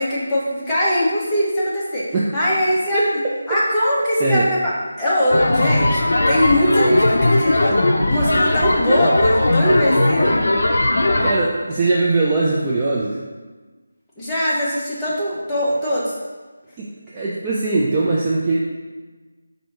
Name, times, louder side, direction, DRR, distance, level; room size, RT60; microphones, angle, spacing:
voice 1, 0.0-2.0 2.3-3.0 3.5-4.7 5.0-7.7 8.0-10.4 14.2-16.1, equal, 5° left, -10 dB, 0.8 m, -20 dB
sound 1, 5.3-11.3, left 1 dB, 60° left, 0.6 m, -18 dB
voice 2, 10.9-13.2 16.8-18.6, right 3 dB, 15° right, -6 dB, 0.4 m, -21 dB
4.3 x 2.7 x 4.7 m, 1.3 s
figure-of-eight pair, 170°, 0 cm